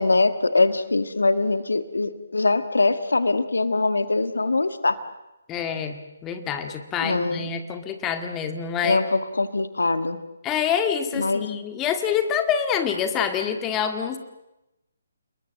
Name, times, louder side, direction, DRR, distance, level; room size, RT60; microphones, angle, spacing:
voice 1, 0.0-5.0 6.6-6.7 7.0-7.5 8.8-10.2 11.1-11.6, left 3 dB, 70° left, 12 dB, 1.7 m, -23 dB
voice 2, 5.5-9.0 10.4-14.2, left 8 dB, 15° left, 7 dB, 2.0 m, -26 dB
30.0 x 21.0 x 7.8 m, 0.95 s
figure-of-eight pair, 140°, 0 cm